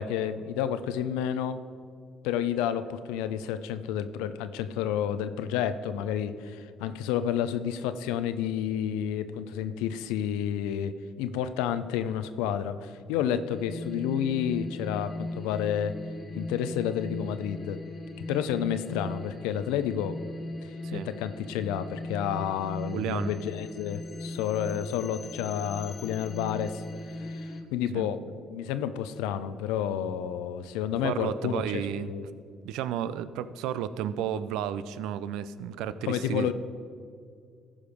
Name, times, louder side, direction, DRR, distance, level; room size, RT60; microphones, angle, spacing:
voice 1, 0.0-1.6 2.2-10.9 11.2-15.9 16.4-17.8 18.3-20.2 20.6-26.8 27.2-32.2 36.1-36.5, left 9 dB, 80° left, 11 dB, 0.4 m, -30 dB
sound 1, 13.5-27.6, left 1 dB, 35° left, 1.5 m, -38 dB
voice 2, 22.9-23.3 27.9-28.1 31.0-32.1 32.6-36.5, right 10 dB, 75° right, 15 dB, 0.4 m, -32 dB
14.0 x 5.0 x 5.2 m, 2.2 s
hypercardioid pair, 55°, 0 cm